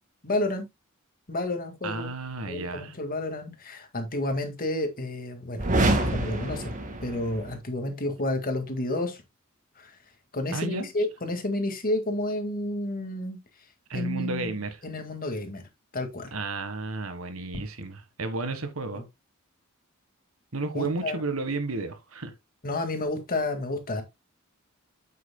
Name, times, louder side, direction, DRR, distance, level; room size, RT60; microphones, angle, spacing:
voice 1, 0.2-0.7 1.3-2.1 2.5-6.8 7.0-9.2 9.8-10.0 10.3-13.4 13.9-14.5 14.8-15.7 15.9-16.3 18.9-19.0 20.7-21.2 22.6-24.0, left 1 dB, 45° left, 1.9 m, -30 dB
voice 2, 1.8-2.9 10.5-10.9 13.9-14.8 16.3-19.0 20.5-22.3, right 3 dB, 80° right, 1.5 m, -32 dB
sound 1, 5.6-7.6, right 2 dB, 40° right, 1.9 m, -26 dB
8.4 x 8.4 x 2.2 m
head